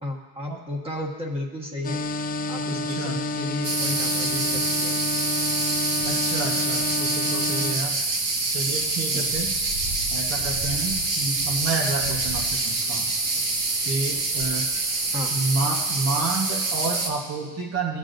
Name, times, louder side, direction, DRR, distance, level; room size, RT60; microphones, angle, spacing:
voice 1, 0.0-2.0 2.5-5.0 9.1-9.3 15.1-15.3, left 1 dB, 15° right, -1 dB, 1.5 m, -33 dB
sound 1, 1.8-7.8, left 2 dB, 25° left, 0.5 m, -29 dB
voice 2, 2.7-3.2 6.0-8.0 8.5-9.5 10.1-13.1 13.8-14.7 15.3-18.0, right 3 dB, 45° right, 1 dB, 1.3 m, -29 dB
sound 2, 3.6-17.1, right 3 dB, 70° right, 1.5 m, -26 dB
15.0 x 8.6 x 2.6 m, 1.2 s
cardioid pair, 125°, 35 cm